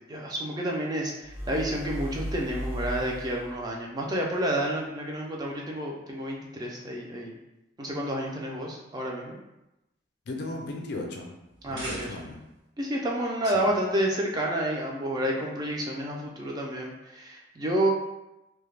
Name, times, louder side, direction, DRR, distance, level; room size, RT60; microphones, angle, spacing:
voice 1, 0.1-7.4 7.8-9.4 11.6-12.1 12.8-17.9, right 1 dB, 20° right, -1 dB, 0.3 m, -30 dB
sound 1, 1.2-3.6, equal, 50° right, 1.0 m, -36 dB
voice 2, 10.3-11.3 11.7-12.4 13.4-13.7, left 2 dB, 60° left, 1 dB, 0.4 m, -36 dB
sound 2, 11.5-12.6, right 1 dB, 70° right, 0.7 m, -40 dB
2.2 x 2.0 x 3.1 m, 0.95 s
head